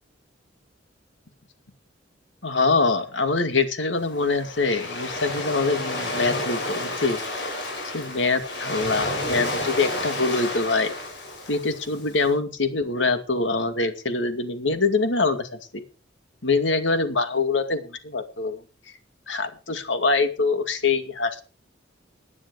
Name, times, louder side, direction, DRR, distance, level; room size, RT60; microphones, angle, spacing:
voice 1, 2.4-7.5 7.9-10.9 11.5-15.8 16.4-18.6 19.3-21.4, left 3 dB, 80° left, 8 dB, 2.3 m, -24 dB
Waves surf, 4.0-12.2, left 2 dB, 65° left, 7.3 m, -31 dB
16.5 x 9.9 x 4.9 m, 0.36 s
head